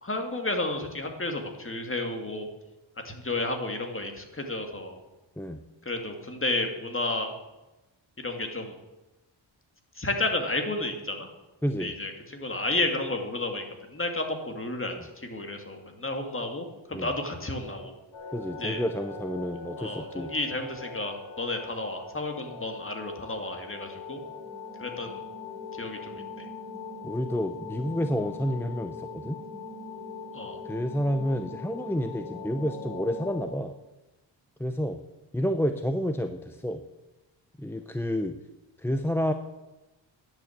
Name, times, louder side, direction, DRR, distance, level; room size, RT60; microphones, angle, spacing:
voice 1, 0.0-2.5 3.0-5.0 5.9-7.3 8.2-8.8 10.0-11.3 11.8-13.6 13.9-17.9 18.6-18.8 19.8-24.2 24.8-25.2 25.8-26.5 30.3-30.6, left 2 dB, 25° left, 4 dB, 2.3 m, -32 dB
voice 2, 11.6-11.9 15.0-15.1 16.9-17.1 18.3-20.3 27.0-29.4 30.6-33.7 34.6-35.0 35.3-36.8 37.6-38.4 38.8-39.3, equal, 5° left, 7 dB, 0.6 m, -29 dB
sound 1, 18.1-33.4, left 4 dB, 85° left, 4.2 m, -41 dB
11.0 x 8.8 x 7.3 m, 1.0 s
cardioid pair, 75°, 47 cm